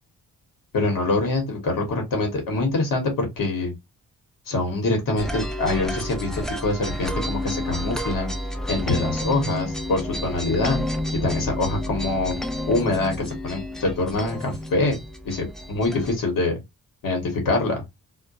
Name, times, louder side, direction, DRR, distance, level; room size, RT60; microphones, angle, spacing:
voice 1, 0.7-3.7 4.5-8.3 8.7-10.8 11.2-12.4 12.7-15.0 15.2-16.6 17.0-17.8, left 2 dB, 65° left, 1.1 m, -24 dB
sound 1, 5.2-16.2, equal, ahead, 0.5 m, -30 dB
2.2 x 2.1 x 2.6 m
supercardioid pair, 55°, 35 cm